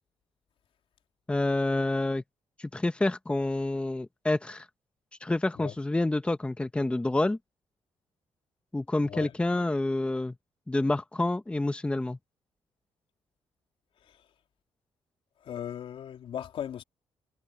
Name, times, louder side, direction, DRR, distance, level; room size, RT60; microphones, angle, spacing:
voice 1, 1.3-2.2 2.6-4.6 5.2-7.4 8.7-10.3 10.7-12.2, left 2 dB, 10° left, 1.1 m, -28 dB
voice 2, 15.4-16.8, left 9 dB, 65° left, 3.4 m, -37 dB
cardioid pair, 115°, 10 cm